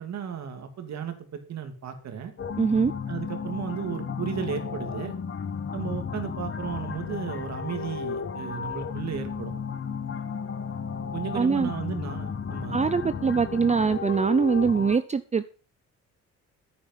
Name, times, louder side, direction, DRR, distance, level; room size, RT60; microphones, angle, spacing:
voice 1, 0.0-2.3 3.1-5.1 5.7-9.5 11.1-12.8, right 7 dB, 60° right, 2.6 m, -34 dB
sound 1, 2.4-15.0, left 6 dB, 45° left, 1.3 m, -34 dB
voice 2, 2.6-2.9 11.3-11.7 12.7-15.5, right 5 dB, 25° right, 0.6 m, -23 dB
10.5 x 8.6 x 5.6 m
cardioid pair, 90°, 30 cm